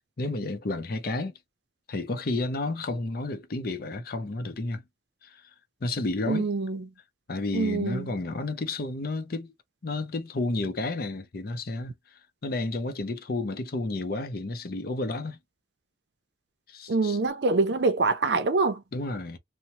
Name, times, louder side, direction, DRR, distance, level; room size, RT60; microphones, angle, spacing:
voice 1, 0.2-1.3 1.9-4.8 5.2-5.4 5.8-6.5 7.3-9.5 9.8-11.9 12.4-15.4 16.7-17.2 18.9-19.4, left 2 dB, 55° left, 0.6 m, -31 dB
voice 2, 6.3-6.9 7.5-8.1 16.9-18.8, right 3 dB, 65° right, 0.5 m, -25 dB
2.9 x 2.1 x 2.7 m
head